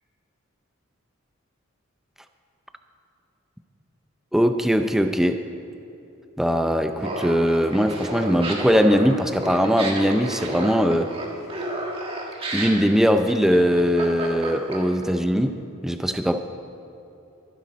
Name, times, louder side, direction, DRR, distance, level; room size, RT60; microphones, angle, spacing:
voice 1, 4.3-5.4 6.4-11.1 12.5-15.6 15.8-16.4, equal, ahead, 7 dB, 0.5 m, -20 dB
Laughter, 7.0-15.0, right 2 dB, 25° right, 1.8 m, -31 dB
22.5 x 10.0 x 4.1 m, 2.9 s
head